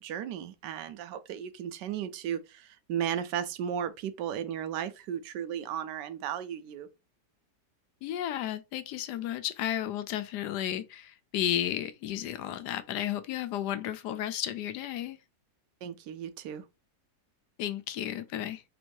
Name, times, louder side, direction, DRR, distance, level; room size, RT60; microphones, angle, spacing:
voice 1, 0.0-6.9 15.8-16.7, right 9 dB, 90° right, 1.2 m, -35 dB
voice 2, 8.0-15.2 17.6-18.6, left 11 dB, 75° left, 1.1 m, -33 dB
3.5 x 2.6 x 4.5 m
omnidirectional pair, 1.8 m